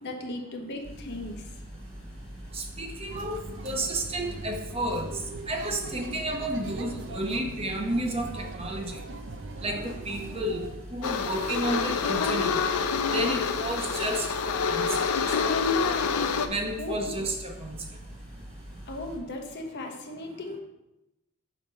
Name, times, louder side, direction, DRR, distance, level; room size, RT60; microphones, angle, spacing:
voice 1, 0.0-1.5 6.8-6.9 16.8-17.1 18.9-20.6, left 2 dB, 50° left, 2 dB, 0.9 m, -37 dB
sound 1, 0.8-19.2, right 1 dB, 5° left, 1.6 m, -44 dB
voice 2, 2.5-3.3 3.6-5.1 5.5-9.0 9.6-12.5 13.1-15.4 16.5-17.8, right 1 dB, 25° right, 2 dB, 0.8 m, -31 dB
sound 2, 3.1-10.8, right 3 dB, 55° right, 0.5 m, -42 dB
sound 3, 11.0-16.5, left 5 dB, 80° left, 0.5 m, -27 dB
6.3 x 3.9 x 5.5 m, 0.92 s
head